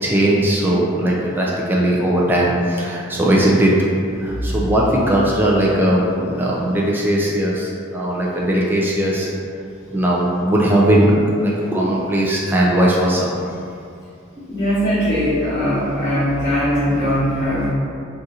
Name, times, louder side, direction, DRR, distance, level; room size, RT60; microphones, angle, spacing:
voice 1, 0.0-3.7 4.2-9.3 9.9-13.3, right 1 dB, 10° right, -4 dB, 0.3 m, -18 dB
voice 2, 14.5-17.7, equal, 55° left, -14 dB, 1.0 m, -20 dB
3.8 x 2.5 x 2.7 m, 2.4 s
head